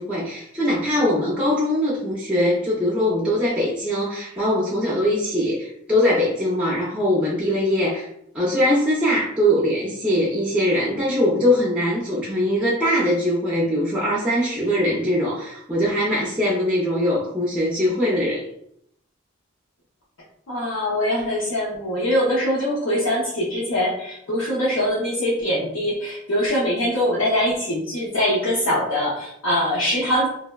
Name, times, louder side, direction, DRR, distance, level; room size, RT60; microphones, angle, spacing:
voice 1, 0.0-8.1 8.3-18.4, equal, 5° right, -5 dB, 0.4 m, -21 dB
voice 2, 20.5-30.3, equal, 80° left, -8 dB, 0.7 m, -23 dB
3.2 x 2.0 x 2.2 m, 0.72 s
head